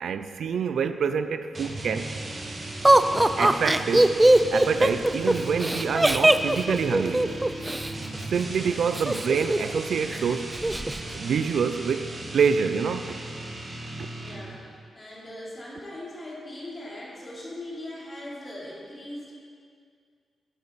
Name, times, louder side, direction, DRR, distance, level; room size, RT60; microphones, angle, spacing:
voice 1, 0.0-2.1 3.4-4.2 4.5-7.3 8.3-10.6 11.1-13.1, right 6 dB, 75° right, 10 dB, 0.5 m, -26 dB
sound 1, 1.5-14.6, right 2 dB, 35° right, 2.0 m, -37 dB
Laughter, 2.8-7.9 8.9-9.8 10.1-10.2 10.5-11.0, right 1 dB, 15° right, 0.4 m, -20 dB
voice 2, 14.1-19.3, left 1 dB, 30° left, -6 dB, 3.6 m, -40 dB
13.0 x 10.5 x 4.2 m, 2.2 s
cardioid pair, 105°, 0 cm